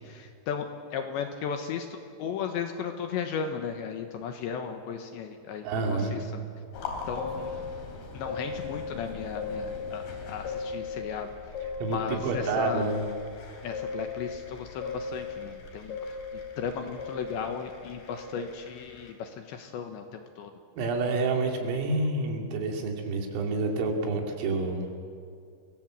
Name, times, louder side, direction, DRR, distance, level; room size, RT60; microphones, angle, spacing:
voice 1, 0.0-6.5 7.1-7.6 8.1-11.3 11.9-12.9 13.6-20.5, left 6 dB, 70° left, 6 dB, 3.2 m, -36 dB
voice 2, 5.6-6.2 11.8-13.0 20.8-24.9, right 3 dB, 85° right, 2 dB, 5.5 m, -28 dB
sound 1, 6.7-19.1, left 4 dB, 55° left, 4.6 m, -37 dB
29.5 x 22.5 x 7.7 m, 2.3 s
omnidirectional pair, 5.8 m